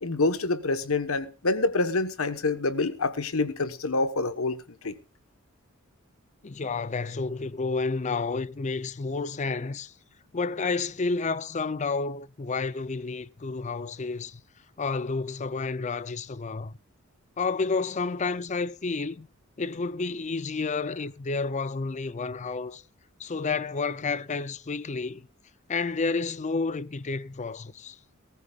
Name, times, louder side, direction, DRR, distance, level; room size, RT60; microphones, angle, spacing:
voice 1, 0.0-4.6 4.8-4.9, left 3 dB, 80° left, 1.2 m, -26 dB
voice 2, 6.4-9.9 10.3-14.4 14.8-16.8 17.4-19.3 19.6-22.8 23.2-25.3 25.7-28.0, left 4 dB, 35° left, 0.5 m, -30 dB
19.0 x 14.5 x 2.4 m
head